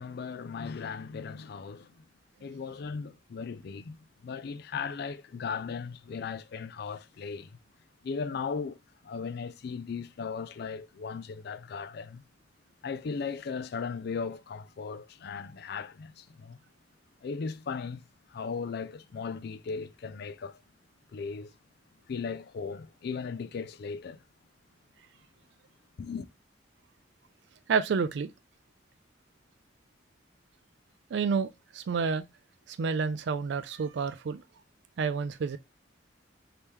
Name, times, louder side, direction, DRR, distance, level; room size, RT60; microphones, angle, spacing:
voice 1, 0.0-1.9 2.4-4.0 4.2-7.6 8.0-8.8 9.0-12.2 12.8-16.6 17.2-18.0 18.3-20.6 21.1-21.5 22.1-24.2 26.0-26.3, left 5 dB, 60° left, 0.4 m, -37 dB
voice 2, 27.7-28.3 31.1-32.2 32.7-34.4 35.0-35.6, right 5 dB, 70° right, 0.4 m, -29 dB
3.2 x 2.9 x 3.4 m
head